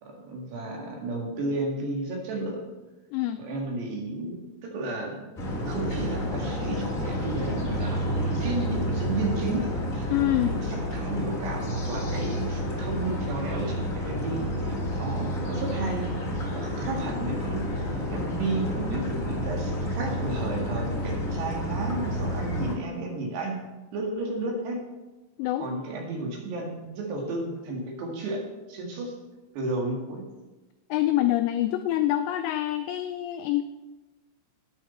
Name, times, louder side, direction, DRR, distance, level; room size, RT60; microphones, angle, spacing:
voice 1, 0.0-2.6 3.4-5.2 5.7-10.1 10.6-14.7 15.0-16.1 16.5-23.6 23.9-24.8 25.6-28.4 28.7-29.1 29.6-30.2, right 2 dB, 65° right, 1 dB, 3.8 m, -32 dB
voice 2, 3.1-3.4 10.1-10.6 25.4-25.7 30.9-33.6, left 14 dB, 90° left, 9 dB, 2.5 m, -26 dB
sound 1, 5.4-22.7, equal, 35° left, 1.3 m, -30 dB
13.0 x 9.9 x 4.3 m, 1.1 s
omnidirectional pair, 5.6 m